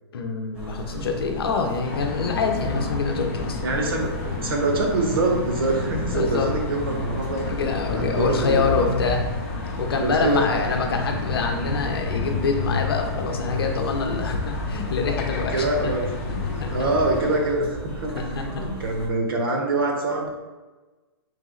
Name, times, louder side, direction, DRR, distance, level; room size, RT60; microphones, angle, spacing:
voice 1, 0.1-3.7 6.1-6.5 7.4-9.3 9.8-15.9 16.3-16.8 18.2-18.6, left 4 dB, 65° left, 3 dB, 0.7 m, -26 dB
sound 1, 0.5-19.1, right 2 dB, 5° right, 0.5 m, -38 dB
sound 2, 1.8-17.4, left 3 dB, 35° left, 0.6 m, -30 dB
voice 2, 3.6-7.4 7.9-8.7 10.0-10.4 15.5-20.3, right 2 dB, 60° right, 0 dB, 1.1 m, -25 dB
3.4 x 3.1 x 3.8 m, 1.2 s
hypercardioid pair, 170°, 13 cm